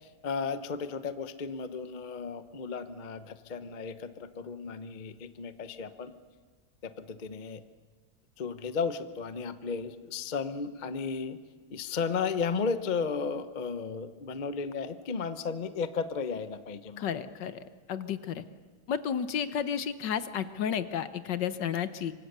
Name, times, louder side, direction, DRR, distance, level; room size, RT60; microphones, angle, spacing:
voice 1, 0.2-6.1 6.8-7.6 8.4-11.4 11.7-17.0, left 5 dB, 45° left, 11 dB, 0.5 m, -34 dB
voice 2, 17.0-17.6 17.9-18.4 18.9-22.1, left 8 dB, 65° left, 12 dB, 1.5 m, -32 dB
25.5 x 24.5 x 6.8 m, 1.5 s
omnidirectional pair, 2.2 m